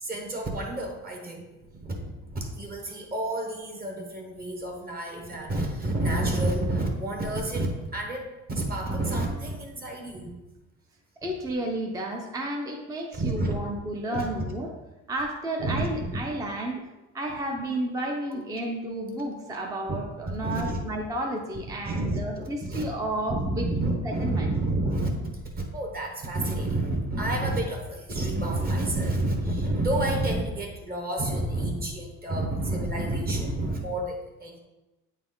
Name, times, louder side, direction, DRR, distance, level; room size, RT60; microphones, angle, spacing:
voice 1, 0.0-1.5 1.8-10.4 13.1-13.5 14.1-14.3 15.6-16.2 18.3-18.4 19.9-20.0 20.4-20.8 21.8-22.8 23.3-34.6, right 1 dB, 30° right, 2 dB, 1.1 m, -29 dB
voice 2, 11.2-14.7 15.1-16.8 17.1-24.5, right 1 dB, 10° right, 1 dB, 0.6 m, -32 dB
8.7 x 4.1 x 3.8 m, 1.0 s
cardioid pair, 150°, 32 cm